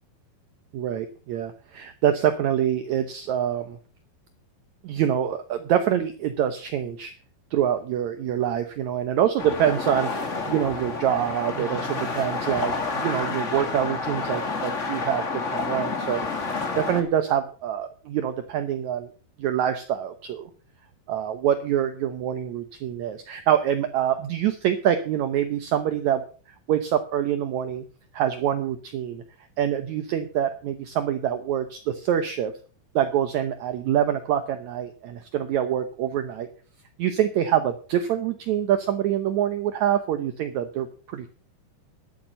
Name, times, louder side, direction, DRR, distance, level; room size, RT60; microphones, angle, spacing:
voice 1, 0.7-3.8 4.8-7.1 7.5-16.2 16.8-19.1 19.4-20.5 21.1-26.2 26.7-27.8 28.1-29.2 29.6-32.5 32.9-36.5 37.0-41.3, right 10 dB, 75° right, 8 dB, 1.7 m, -25 dB
sound 1, 9.4-17.0, left 3 dB, 50° left, 0.8 m, -29 dB
11.5 x 8.8 x 6.4 m, 0.39 s
omnidirectional pair, 4.5 m